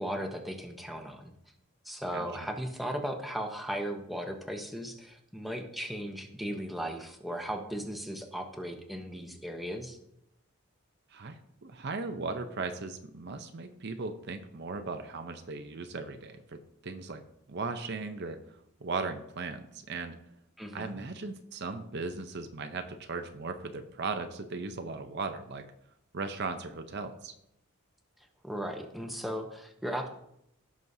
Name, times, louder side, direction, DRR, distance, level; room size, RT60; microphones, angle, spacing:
voice 1, 0.0-1.3 1.8-10.0 20.6-21.0 28.4-30.1, equal, ahead, 3 dB, 0.8 m, -37 dB
voice 2, 11.1-17.2 17.5-18.4 18.8-20.2 20.7-25.6 26.1-27.3, right 3 dB, 50° right, 7 dB, 0.6 m, -37 dB
16.0 x 6.2 x 2.7 m, 0.77 s
head